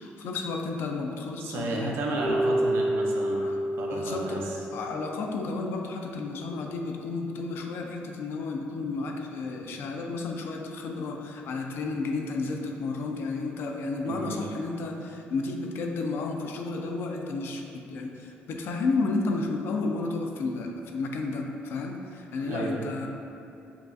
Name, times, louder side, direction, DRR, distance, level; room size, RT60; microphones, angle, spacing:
voice 1, 0.0-2.0 3.4-3.6 3.9-23.1, left 3 dB, 65° left, 3 dB, 0.4 m, -32 dB
voice 2, 1.4-3.5 3.8-4.6 14.0-14.4 22.4-22.8, right 2 dB, 75° right, -2 dB, 0.7 m, -32 dB
Keyboard (musical), 2.2-5.4, right 1 dB, 10° left, 0.6 m, -29 dB
7.1 x 2.4 x 2.6 m, 2.8 s
cardioid pair, 130°, 4 cm